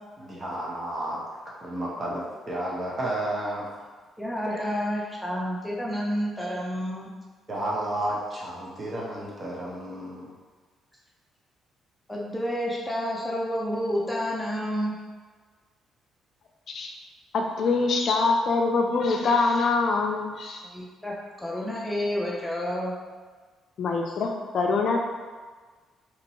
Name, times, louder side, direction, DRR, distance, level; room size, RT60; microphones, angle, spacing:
voice 1, 0.2-1.2 1.4-3.7 4.5-4.8 7.5-10.3, right 1 dB, 35° right, -5 dB, 0.9 m, -32 dB
voice 2, 4.2-7.1 12.1-15.0 20.6-22.9, equal, 10° left, -4 dB, 0.5 m, -30 dB
voice 3, 17.3-20.6 23.8-25.1, left 3 dB, 60° left, 2 dB, 0.4 m, -24 dB
2.9 x 2.6 x 2.9 m, 1.4 s
cardioid pair, 90°, 0 cm